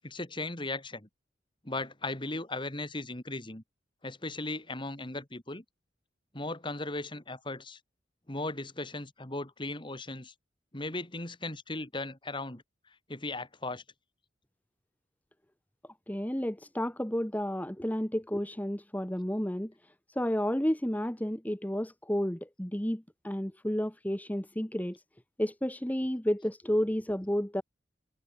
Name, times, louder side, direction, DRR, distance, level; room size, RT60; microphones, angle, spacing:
voice 1, 0.0-1.1 1.6-3.6 4.0-5.6 6.3-7.8 8.3-10.3 10.7-12.6 13.1-13.8, left 2 dB, 25° left, 2.9 m, -37 dB
voice 2, 16.1-19.7 20.1-25.0 25.4-27.6, equal, 10° left, 1.4 m, -31 dB
head